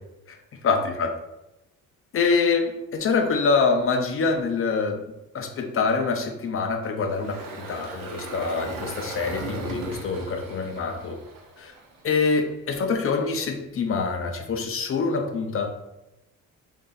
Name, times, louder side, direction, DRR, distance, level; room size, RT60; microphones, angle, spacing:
voice 1, 0.6-1.1 2.1-5.0 5.3-11.2 11.6-11.7 12.0-15.7, left 4 dB, 40° left, 4 dB, 0.6 m, -25 dB
Engine, 7.0-12.3, right 2 dB, 70° right, 0.9 m, -37 dB
3.0 x 2.7 x 3.8 m, 0.92 s
cardioid pair, 105°, 34 cm